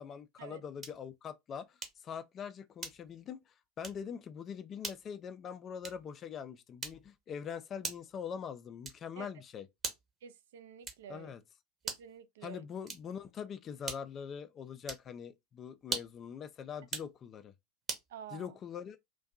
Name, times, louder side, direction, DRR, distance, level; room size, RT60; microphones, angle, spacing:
voice 1, 0.0-9.7 11.1-11.4 12.4-17.5 18.3-19.0, left 7 dB, 35° left, 0.3 m, -43 dB
sound 1, 0.8-1.1 1.8-2.1 2.8-3.2 3.8-4.1 4.8-5.1 5.8-6.1 6.8-7.2 7.8-8.2 8.8-9.2 9.8-10.2 10.8-11.2 11.8-12.2 12.8-13.2 13.8-14.2 14.8-15.1 15.8-16.3 16.8-17.1 17.9-18.1, right 4 dB, 25° right, 0.8 m, -42 dB
voice 2, 10.2-11.3 11.8-12.7 18.1-18.5, right 9 dB, 65° right, 0.3 m, -49 dB
2.6 x 2.2 x 2.4 m
figure-of-eight pair, 80°, 0 cm